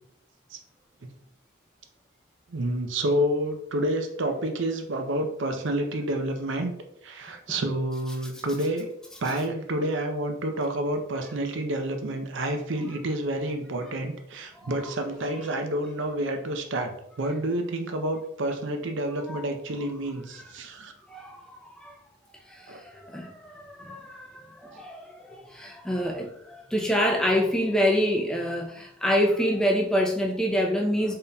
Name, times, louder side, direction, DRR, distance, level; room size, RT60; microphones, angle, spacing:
voice 1, 2.5-6.7 7.0-8.9 9.2-16.9 17.2-20.9 22.7-22.8, right 1 dB, 75° right, 5 dB, 0.5 m, -29 dB
voice 2, 21.1-22.0 22.5-31.2, equal, 5° left, 0 dB, 0.5 m, -27 dB
4.0 x 3.6 x 2.2 m, 0.74 s
head